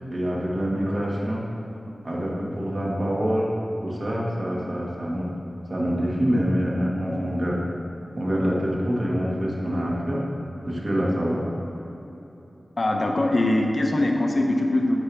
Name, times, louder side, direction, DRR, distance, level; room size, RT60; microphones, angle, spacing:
voice 1, 0.1-1.4 2.0-3.5 3.8-5.3 5.7-7.6 8.1-10.2 10.6-11.4, equal, 45° right, -4 dB, 1.9 m, -25 dB
voice 2, 12.8-15.0, left 1 dB, 45° left, 2 dB, 0.8 m, -22 dB
11.0 x 8.0 x 3.5 m, 3.0 s
wide cardioid pair, 95°, 0 cm